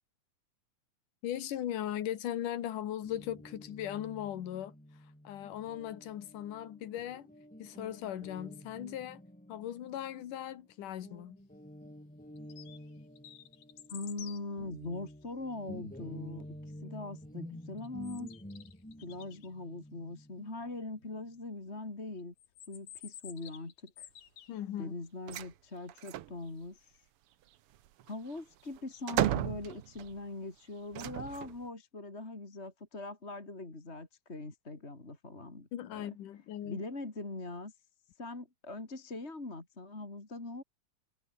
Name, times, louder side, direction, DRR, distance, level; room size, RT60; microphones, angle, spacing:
voice 1, 1.2-4.7 5.2-7.3 7.6-9.2 9.5-11.4 24.5-24.9 35.7-36.8, left 11 dB, 85° left, 3.2 m, -38 dB
Guitar, 3.0-10.7 11.0-21.5, equal, 5° left, 2.7 m, -50 dB
sound 1, 12.4-12.9 13.2-14.4 17.8-19.5 22.4-24.6, left 10 dB, 65° left, 2.8 m, -51 dB
voice 2, 13.9-18.3 19.0-22.3 22.7-24.1 24.8-27.1 28.0-36.2 36.6-37.7 38.2-40.6, left 2 dB, 20° left, 3.2 m, -42 dB
sound 2, 25.3-25.5 25.9-26.4 27.7-30.2 30.9-31.7, right 13 dB, 70° right, 1.4 m, -34 dB
omnidirectional pair, 3.6 m